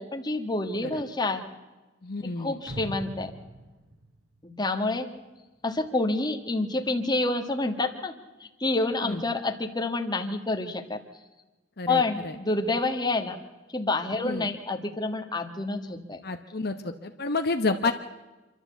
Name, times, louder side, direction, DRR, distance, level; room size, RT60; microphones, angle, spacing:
voice 1, 0.0-1.5 2.2-3.3 4.4-5.1 5.6-8.1 8.4-11.0 11.9-13.4 13.7-16.2, left 2 dB, 25° left, 5 dB, 1.5 m, -28 dB
voice 2, 2.0-2.6 9.0-9.2 11.8-12.3 14.2-14.5 16.2-17.9, left 3 dB, 60° left, 7 dB, 1.0 m, -30 dB
sound 1, 2.7-5.2, right 1 dB, 70° right, 3.7 m, -41 dB
26.5 x 12.5 x 8.1 m, 1.1 s
head